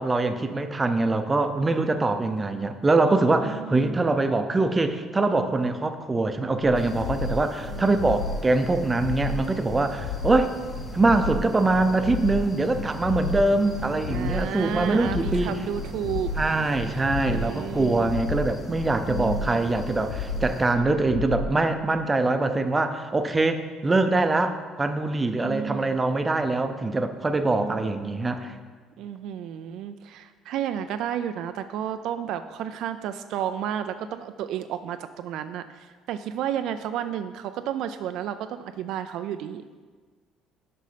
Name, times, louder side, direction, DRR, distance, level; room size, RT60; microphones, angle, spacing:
voice 1, 0.0-10.5 10.9-15.6 16.3-28.5, right 2 dB, 20° right, 8 dB, 0.5 m, -23 dB
voice 2, 3.4-4.0 7.7-8.2 14.1-16.3 17.3-18.2 19.1-19.7 25.4-26.0 27.6-28.0 29.0-39.6, right 9 dB, 70° right, 10 dB, 0.3 m, -32 dB
sound 1, 6.6-21.6, left 4 dB, 85° left, 0.4 m, -33 dB
sound 2, 6.7-20.7, left 2 dB, 20° left, 0.9 m, -40 dB
6.6 x 5.3 x 5.0 m, 1.5 s
cardioid pair, 100°, 0 cm